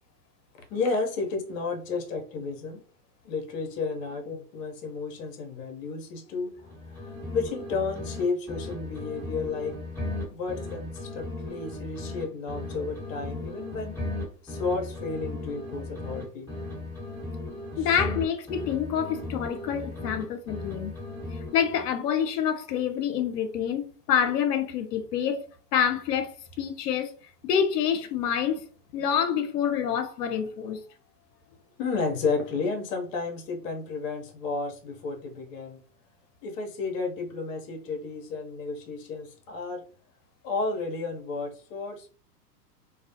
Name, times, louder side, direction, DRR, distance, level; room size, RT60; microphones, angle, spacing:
voice 1, 0.7-2.8 3.2-9.8 10.3-14.0 14.4-16.5 17.8-17.9 31.8-35.8 36.4-39.9 40.4-42.1, left 4 dB, 55° left, 0.8 m, -32 dB
sound 1, 6.6-8.2 8.5-12.2 12.5-16.2 16.5-20.2 20.5-21.9, left 2 dB, 5° left, 1.3 m, -36 dB
voice 2, 17.8-20.9 21.5-25.5 25.7-27.1 27.4-28.6 28.9-30.8, left 8 dB, 80° left, 0.6 m, -27 dB
2.3 x 2.1 x 2.7 m
hypercardioid pair, 110°, 48 cm